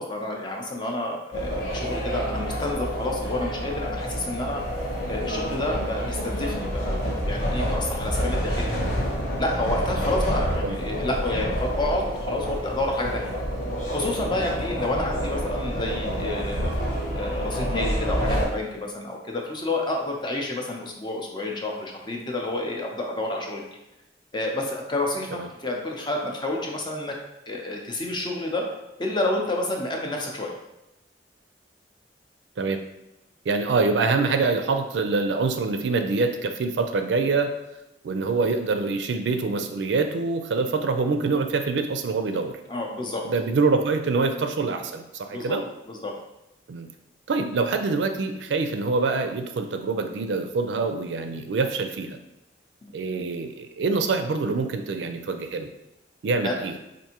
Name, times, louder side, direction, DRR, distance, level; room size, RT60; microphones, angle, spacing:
voice 1, 0.0-4.6 5.1-8.7 9.4-13.3 13.9-16.7 17.1-23.6 24.3-25.3 25.6-27.1 27.5-28.7 29.0-30.5 42.7-43.2 45.3-45.6 45.9-46.1 52.8-52.9 56.4-56.6, left 2 dB, 25° left, 0 dB, 0.6 m, -29 dB
sound 1, 1.3-18.4, equal, 50° left, 1.1 m, -28 dB
voice 2, 33.5-37.5 38.0-42.6 43.3-45.7 46.7-46.9 47.3-52.2 52.9-55.7 56.2-56.7, right 4 dB, 75° right, 6 dB, 0.4 m, -25 dB
4.6 x 2.5 x 2.9 m, 0.94 s
head